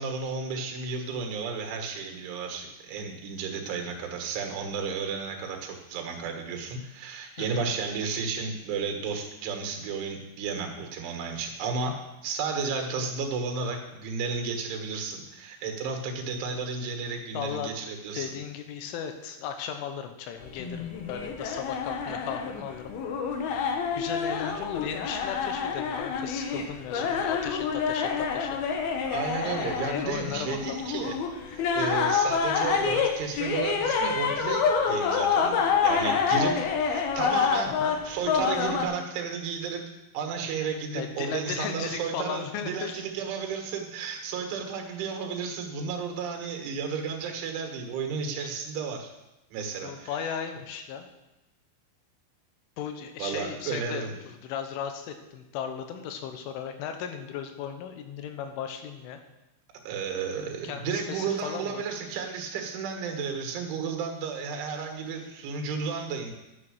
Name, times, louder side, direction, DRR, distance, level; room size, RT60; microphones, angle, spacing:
voice 1, 0.0-11.9 12.2-18.3 24.4-24.5 27.1-27.2 29.0-31.2 31.5-39.9 40.1-49.1 49.5-50.4 53.2-54.1 59.9-66.3, right 5 dB, 80° right, 3 dB, 4.0 m, -33 dB
voice 2, 17.3-17.7 18.1-22.9 24.0-28.6 29.9-30.8 37.7-38.0 41.0-43.0 49.8-51.1 52.8-59.2 60.6-61.8, left 8 dB, 90° left, 6 dB, 3.6 m, -36 dB
sound 1, 20.4-38.8, left 6 dB, 70° left, 2.4 m, -27 dB
11.5 x 7.8 x 6.4 m, 0.97 s
omnidirectional pair, 5.4 m